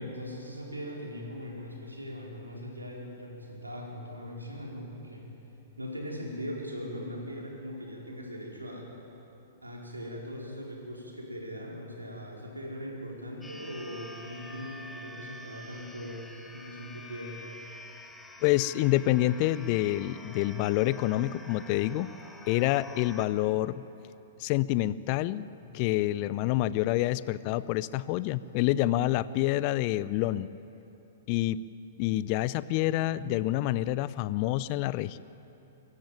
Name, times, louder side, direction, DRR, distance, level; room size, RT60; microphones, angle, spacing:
voice 1, 0.0-5.3 5.8-8.9 9.6-17.4, equal, 85° right, -2 dB, 4.8 m, -40 dB
sound 1, 13.4-23.3, left 1 dB, 10° left, 1.7 m, -47 dB
voice 2, 18.4-22.1 22.5-23.8 24.4-25.5 25.7-30.5 31.3-31.6 32.0-35.2, left 15 dB, 40° left, 18 dB, 0.6 m, -27 dB
24.0 x 14.5 x 9.3 m, 2.9 s
figure-of-eight pair, 110°, 0 cm